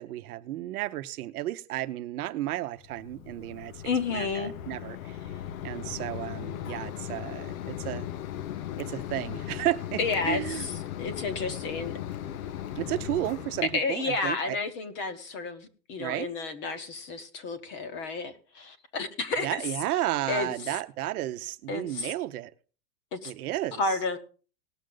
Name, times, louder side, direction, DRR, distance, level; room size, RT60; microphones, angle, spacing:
voice 1, 0.0-3.8 4.1-5.2 5.6-8.1 8.8-10.7 12.8-14.6 16.0-16.3 19.4-22.5 23.2-24.0, right 14 dB, 65° right, 0.9 m, -33 dB
Mechanisms, 2.8-13.8, left 11 dB, 60° left, 0.8 m, -37 dB
voice 2, 3.8-4.5 10.0-10.7 11.0-11.9 13.7-19.5 20.3-20.5 21.7-22.1 23.1-23.3 23.8-24.2, left 4 dB, 25° left, 0.9 m, -31 dB
19.0 x 6.5 x 3.8 m
supercardioid pair, 170°, 47 cm